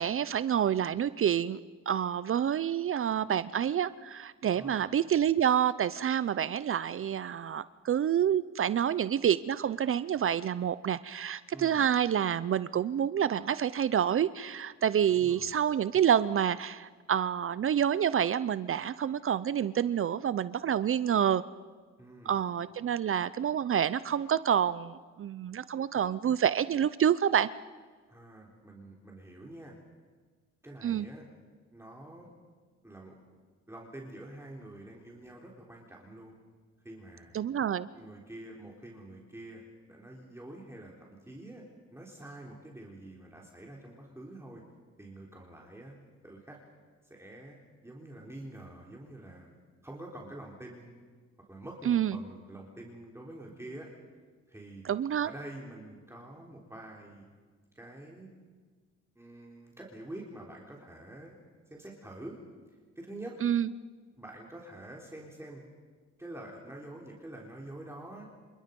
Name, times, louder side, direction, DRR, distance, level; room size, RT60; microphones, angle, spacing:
voice 1, 0.0-1.6 1.9-21.4 22.3-27.5 30.8-31.1 37.3-37.9 51.9-52.2 54.8-55.3 63.4-63.7, right 9 dB, 45° right, 16 dB, 0.6 m, -28 dB
voice 2, 4.5-4.9 11.5-11.9 15.1-15.6 22.0-22.4 28.1-29.7 30.6-31.2 31.7-32.3 32.8-33.2 33.7-36.3 36.8-37.4 37.9-41.6 41.9-44.6 45.0-45.9 46.2-46.6 47.0-49.6 49.8-51.0 51.5-53.9 54.5-54.9 55.2-57.3 57.7-58.3 59.2-61.4 61.7-62.4 63.0-63.4 64.2-65.6 66.2-68.2, right 1 dB, 10° right, -2 dB, 3.8 m, -46 dB
28.5 x 26.0 x 5.4 m, 1.5 s
cardioid pair, 90°, 30 cm